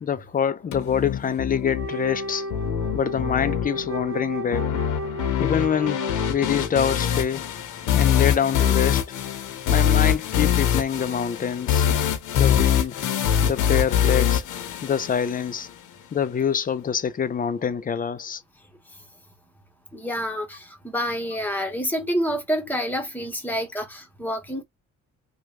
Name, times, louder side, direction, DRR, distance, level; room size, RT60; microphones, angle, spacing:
voice 1, 0.0-2.5 2.9-4.7 5.4-6.0 6.3-7.4 7.9-9.0 9.7-11.9 12.3-13.0 13.4-14.4 14.8-15.7 16.1-18.4, left 8 dB, 30° left, 0.5 m, -25 dB
sound 1, 0.7-15.7, left 9 dB, 90° left, 0.8 m, -24 dB
Wind instrument woodwind instrument, 1.7-6.9, equal, 45° right, 0.7 m, -33 dB
voice 2, 19.9-24.6, equal, 5° left, 1.1 m, -28 dB
3.1 x 2.3 x 2.9 m
cardioid pair, 90°, 30 cm